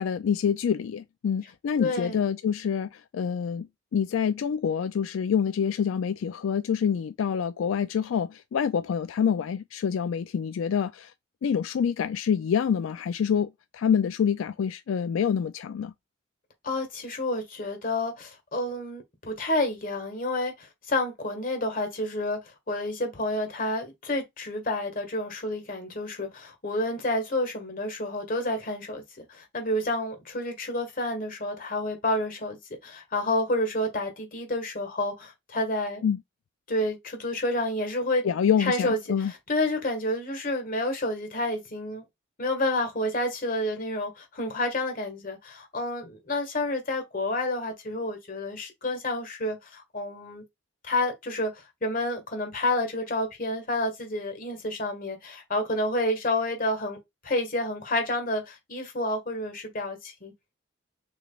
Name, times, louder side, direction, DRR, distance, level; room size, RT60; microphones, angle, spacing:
voice 1, 0.0-11.1 11.4-15.9 36.0-36.2 38.2-39.3, left 7 dB, 85° left, 0.3 m, -26 dB
voice 2, 1.8-2.2 16.6-22.4 22.7-32.6 32.8-36.0 36.7-38.2 38.6-42.0 42.4-50.4 50.8-57.0 57.2-60.3, left 1 dB, 45° left, 1.7 m, -29 dB
6.9 x 3.2 x 2.4 m
head